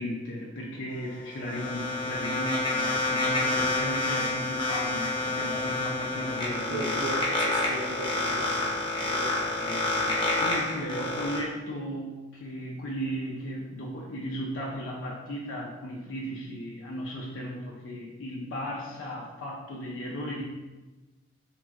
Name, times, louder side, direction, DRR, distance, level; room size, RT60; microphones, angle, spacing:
voice 1, 0.0-7.0 9.5-20.4, equal, 80° left, -3 dB, 0.4 m, -36 dB
sound 1, 0.9-11.4, left 2 dB, 25° left, 0.6 m, -28 dB
voice 2, 6.7-8.7 9.0-9.3, right 2 dB, 70° right, 0 dB, 0.3 m, -36 dB
2.9 x 2.6 x 2.3 m, 1.2 s
head